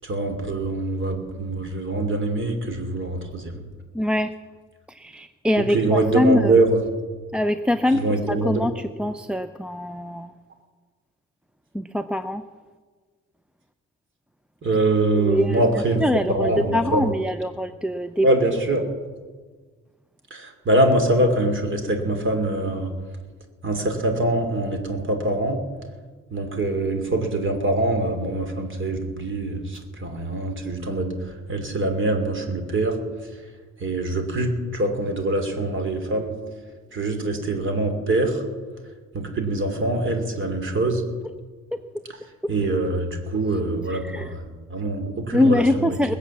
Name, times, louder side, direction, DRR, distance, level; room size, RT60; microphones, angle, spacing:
voice 1, 0.0-3.6 5.7-6.8 7.9-8.7 14.6-16.0 16.3-17.1 18.2-18.8 20.3-22.9 23.6-25.6 26.3-33.0 33.8-36.4 36.9-38.4 39.1-41.1 42.5-46.2, right 2 dB, 40° right, 5 dB, 2.9 m, -24 dB
voice 2, 3.9-4.3 4.9-6.6 7.3-10.3 11.7-12.4 15.1-18.3 41.7-41.8 42.4-42.5 43.9-44.3 45.3-46.1, left 1 dB, 5° right, 8 dB, 0.5 m, -23 dB
20.5 x 8.3 x 7.3 m, 1.5 s
cardioid pair, 90°, 30 cm